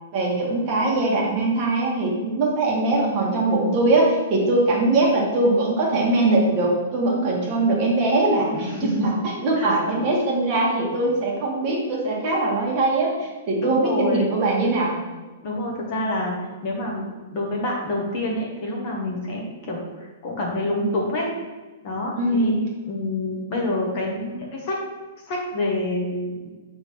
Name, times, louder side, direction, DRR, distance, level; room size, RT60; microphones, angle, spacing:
voice 1, 0.1-15.0 22.2-22.5, right 2 dB, 25° right, -3 dB, 1.4 m, -21 dB
voice 2, 8.5-9.1 9.6-9.7 13.6-14.3 15.4-16.3 16.6-21.3 21.8-22.5 22.9-24.8 25.3-26.5, left 1 dB, 30° left, -1 dB, 1.0 m, -27 dB
6.8 x 3.5 x 5.8 m, 1.3 s
hypercardioid pair, 180°, 0 cm